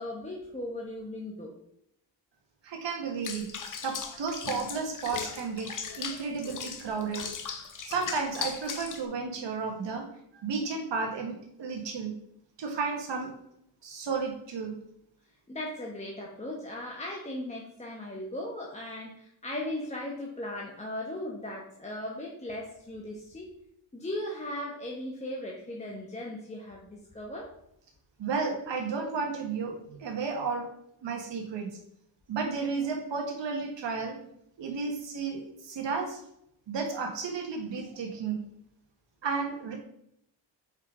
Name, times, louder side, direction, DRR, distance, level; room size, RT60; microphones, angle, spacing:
voice 1, 0.0-1.5 15.5-23.5 23.9-27.5, left 1 dB, 15° left, -2 dB, 1.0 m, -37 dB
voice 2, 2.6-3.5 3.8-7.2 7.8-10.1 10.3-12.1 12.6-13.3 13.8-14.8 28.2-30.7 31.0-31.7 32.3-34.2 34.6-36.2 36.7-38.4 39.2-39.8, right 4 dB, 65° right, 2 dB, 1.5 m, -33 dB
Water / Bathtub (filling or washing), 3.2-9.1, left 6 dB, 40° left, 0.8 m, -38 dB
5.5 x 4.9 x 3.7 m, 0.75 s
cardioid pair, 100°, 47 cm